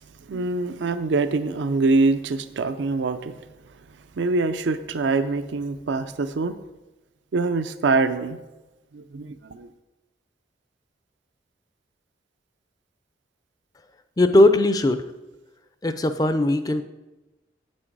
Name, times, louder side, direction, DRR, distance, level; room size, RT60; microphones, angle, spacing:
voice 1, 0.3-3.3 4.2-6.6 7.3-8.4 8.9-9.7, right 3 dB, 70° right, 10 dB, 0.4 m, -24 dB
voice 2, 14.2-15.0 15.8-16.8, left 1 dB, 20° left, 10 dB, 0.4 m, -19 dB
8.4 x 6.2 x 4.6 m, 1.1 s
head